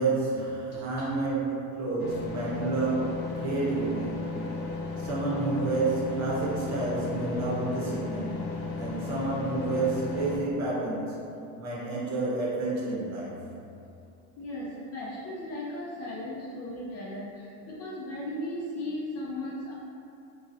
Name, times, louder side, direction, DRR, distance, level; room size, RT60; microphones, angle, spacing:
voice 1, 0.0-4.2 5.0-8.4 8.8-11.1 11.5-13.4, right 3 dB, 40° right, -6 dB, 0.8 m, -29 dB
voice 2, 0.7-1.1 14.4-19.7, left 1 dB, 35° left, -5 dB, 0.4 m, -36 dB
sound 1, 2.0-10.4, left 4 dB, 85° left, 0.6 m, -35 dB
2.9 x 2.7 x 2.6 m, 2.6 s
supercardioid pair, 120°, 44 cm